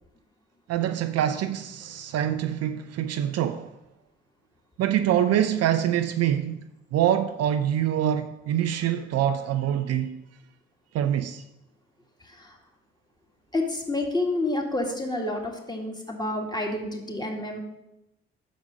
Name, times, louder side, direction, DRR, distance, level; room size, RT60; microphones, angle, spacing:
voice 1, 0.7-3.7 4.8-10.2 10.9-11.4, right 10 dB, 55° right, 0.5 m, -25 dB
voice 2, 12.2-12.6 13.5-17.6, left 2 dB, 15° left, 1.9 m, -29 dB
6.1 x 5.1 x 6.2 m
hypercardioid pair, 40°, 31 cm